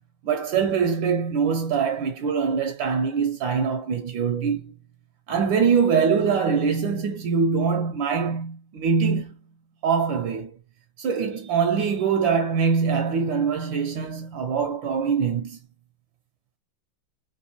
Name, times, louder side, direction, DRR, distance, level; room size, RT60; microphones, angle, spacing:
voice 1, 0.2-4.7 5.3-9.4 9.8-10.6 11.0-15.6, right 6 dB, 75° right, 1.3 m, -23 dB
3.4 x 3.1 x 2.8 m
omnidirectional pair, 2.2 m